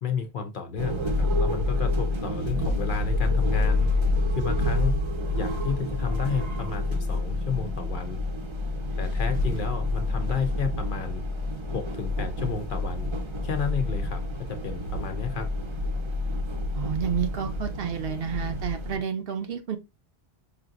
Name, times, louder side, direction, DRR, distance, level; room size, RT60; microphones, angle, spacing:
voice 1, 0.0-3.9 4.3-5.0 5.3-8.2 9.0-11.2 11.7-13.1 13.4-15.5, left 6 dB, 55° left, 0.7 m, -32 dB
sound 1, 0.8-19.0, left 2 dB, 30° right, 0.6 m, -28 dB
voice 2, 16.7-19.8, right 7 dB, 65° right, 0.8 m, -30 dB
5.0 x 2.7 x 2.4 m
omnidirectional pair, 1.1 m